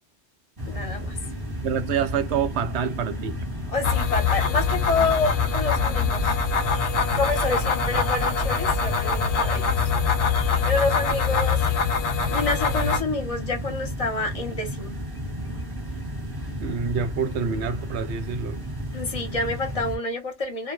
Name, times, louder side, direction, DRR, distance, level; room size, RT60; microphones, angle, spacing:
sound 1, 0.6-20.0, equal, 20° right, 0.8 m, -33 dB
voice 1, 0.7-1.1 3.7-6.3 7.1-9.7 10.6-11.6 12.3-14.9 18.9-20.7, left 3 dB, 35° left, 0.7 m, -28 dB
voice 2, 1.6-3.4 16.6-18.6, right 6 dB, 70° right, 0.8 m, -27 dB
sound 2, 3.8-13.0, left 5 dB, 70° left, 0.8 m, -24 dB
2.3 x 2.1 x 3.0 m
omnidirectional pair, 1.2 m